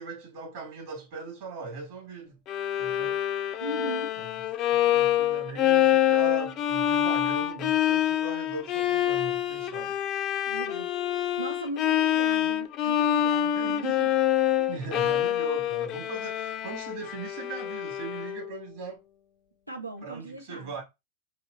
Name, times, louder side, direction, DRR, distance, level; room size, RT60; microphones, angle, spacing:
voice 1, 0.0-2.4 2.8-3.2 4.2-4.3 4.7-10.0 13.6-13.9 14.7-19.0 20.0-20.8, right 4 dB, 50° right, 2.0 m, -39 dB
Bowed string instrument, 2.5-18.6, left 11 dB, 35° left, 0.5 m, -26 dB
voice 2, 3.6-4.2 10.5-14.1 14.6-14.7 19.7-20.7, right 2 dB, 85° right, 0.8 m, -38 dB
4.6 x 3.0 x 2.6 m
figure-of-eight pair, 90°, 0 cm